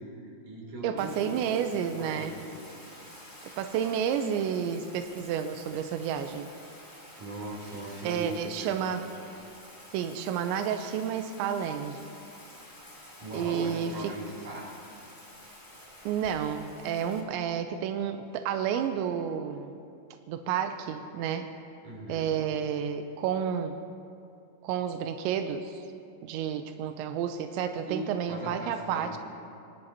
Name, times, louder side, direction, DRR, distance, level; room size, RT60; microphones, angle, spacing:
voice 1, 0.0-2.6 7.2-8.9 13.2-14.7 21.8-22.4 27.9-29.1, right 1 dB, 45° right, -4 dB, 4.6 m, -39 dB
voice 2, 0.8-2.4 3.6-6.5 8.0-9.1 9.9-12.0 13.3-14.1 16.1-19.8 20.3-21.5 22.1-23.8 24.6-25.8 26.2-29.2, right 8 dB, 85° right, 7 dB, 2.6 m, -31 dB
Bathtub (filling or washing), 1.0-17.2, left 1 dB, 15° left, 0.7 m, -50 dB
27.0 x 18.5 x 2.9 m, 2.6 s
omnidirectional pair, 5.8 m